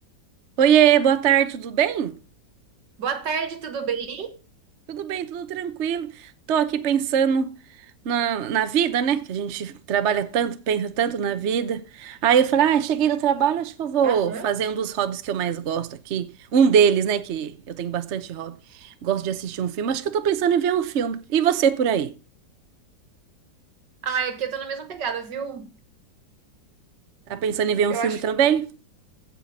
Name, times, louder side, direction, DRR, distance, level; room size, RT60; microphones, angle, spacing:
voice 1, 0.6-2.2 4.9-7.5 8.0-16.3 16.5-18.5 18.8-22.1 27.3-28.7, right 8 dB, 50° right, 0.9 m, -22 dB
voice 2, 3.0-4.4 14.0-14.5 24.0-25.7 27.9-28.2, right 6 dB, 75° right, 2.1 m, -29 dB
16.0 x 5.8 x 4.0 m
omnidirectional pair, 2.0 m